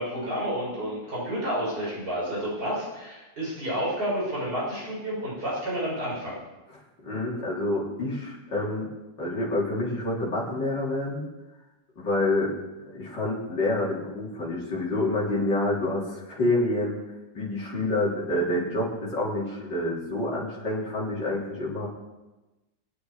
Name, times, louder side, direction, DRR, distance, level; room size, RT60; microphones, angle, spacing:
voice 1, 0.0-6.4, equal, 60° right, -6 dB, 7.0 m, -30 dB
voice 2, 7.0-8.9 9.2-11.3 12.0-12.5 12.9-17.0 17.3-21.9, left 1 dB, 85° left, -6 dB, 4.3 m, -27 dB
25.5 x 9.6 x 5.0 m, 1.1 s
omnidirectional pair, 1.9 m